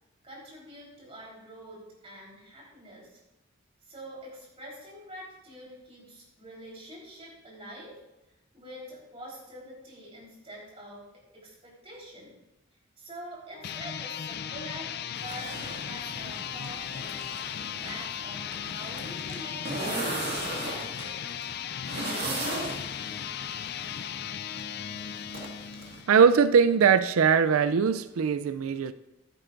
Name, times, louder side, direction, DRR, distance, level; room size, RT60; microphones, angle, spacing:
voice 1, 0.2-3.2 3.8-8.0 8.5-11.1 11.3-12.3 13.0-17.2 17.5-21.2, right 1 dB, 25° right, 4.1 m, -46 dB
sound 1, 13.5-26.3, left 9 dB, 50° left, 0.3 m, -37 dB
sound 2, 15.1-26.0, right 2 dB, 50° right, 1.9 m, -38 dB
voice 2, 26.1-28.9, right 6 dB, 80° right, 0.4 m, -21 dB
15.5 x 11.0 x 2.6 m
head